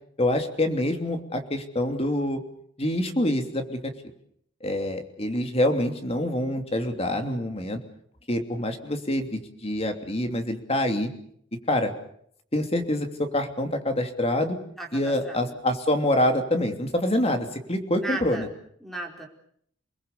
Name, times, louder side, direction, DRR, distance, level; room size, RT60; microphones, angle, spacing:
voice 1, 0.2-2.4 2.8-3.9 4.6-7.8 8.3-11.1 11.7-11.9 12.5-14.6 14.9-18.5, left 1 dB, 30° left, 6 dB, 3.0 m, -26 dB
voice 2, 14.8-15.5 18.0-18.5 18.8-19.3, right 2 dB, ahead, 2 dB, 4.8 m, -35 dB
29.0 x 20.5 x 6.9 m, 0.68 s
head